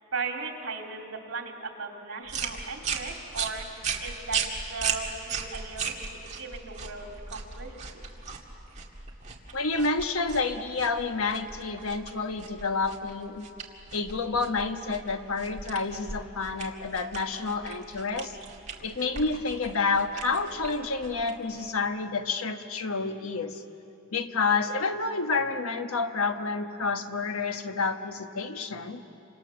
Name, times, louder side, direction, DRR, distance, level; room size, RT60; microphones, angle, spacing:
voice 1, 0.1-4.4 4.7-6.0 6.4-8.1, right 4 dB, 75° right, 2 dB, 2.8 m, -37 dB
sound 1, 2.3-21.8, right 6 dB, 35° right, 2.0 m, -37 dB
voice 2, 9.5-13.5 13.9-18.4 18.8-23.6 24.1-29.0, left 4 dB, 85° left, 7 dB, 1.3 m, -29 dB
29.5 x 26.0 x 7.0 m, 2.8 s
head